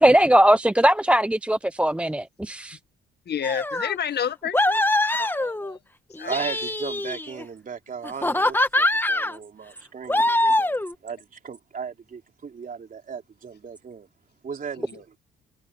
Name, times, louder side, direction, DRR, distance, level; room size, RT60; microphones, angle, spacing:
voice 1, 0.0-2.8, right 1 dB, 5° right, 0.6 m, -19 dB
voice 2, 3.3-4.8 5.1-5.8 6.2-6.4, left 8 dB, 55° left, 1.4 m, -30 dB
sound 1, 3.4-4.0 4.5-5.8 6.2-7.4 8.0-9.4 10.1-10.9, left 1 dB, 10° left, 1.8 m, -23 dB
voice 3, 6.2-14.1 14.4-15.2, right 6 dB, 45° right, 3.6 m, -36 dB
cardioid pair, 90°, 20 cm